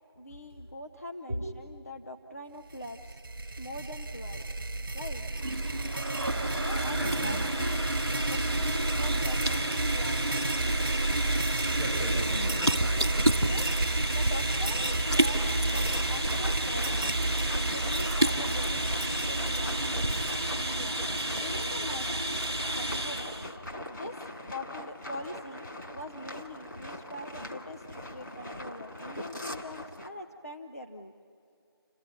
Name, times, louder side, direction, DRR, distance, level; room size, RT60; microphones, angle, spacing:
voice 1, 0.2-3.2 3.6-4.4 4.9-5.2 6.5-7.9 8.3-10.5 13.4-13.7 14.1-17.2 17.5-23.3 23.6-24.2 24.5-25.6 25.9-31.1, left 1 dB, 40° left, 4 dB, 0.8 m, -43 dB
sound 1, 2.7-21.8, right 2 dB, 60° right, 0.6 m, -32 dB
sound 2, 5.3-23.5, right 1 dB, 5° right, 0.7 m, -31 dB
voice 2, 6.9-7.4 8.6-8.7 11.6-12.8 13.2-13.3, equal, 70° left, -1 dB, 7.2 m, -36 dB
sound 3, 15.3-30.1, left 1 dB, 55° left, 2.4 m, -42 dB
29.0 x 15.5 x 9.7 m, 2.8 s
figure-of-eight pair, 170°, 13 cm